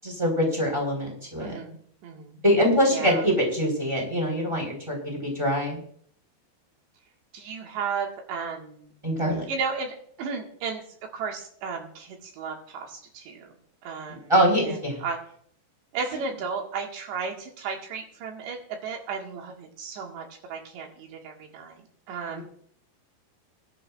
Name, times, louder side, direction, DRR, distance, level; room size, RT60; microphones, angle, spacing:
voice 1, 0.0-1.6 2.4-5.8 9.0-9.4 14.1-15.0 22.3-22.4, equal, 5° right, 0 dB, 4.4 m, -24 dB
voice 2, 1.4-1.7 2.0-2.4 2.9-3.3 7.3-8.9 9.5-13.5 13.8-14.3 14.6-15.2 15.9-22.4, right 5 dB, 90° right, 1 dB, 4.1 m, -34 dB
22.5 x 11.0 x 2.5 m, 0.62 s
omnidirectional pair, 4.9 m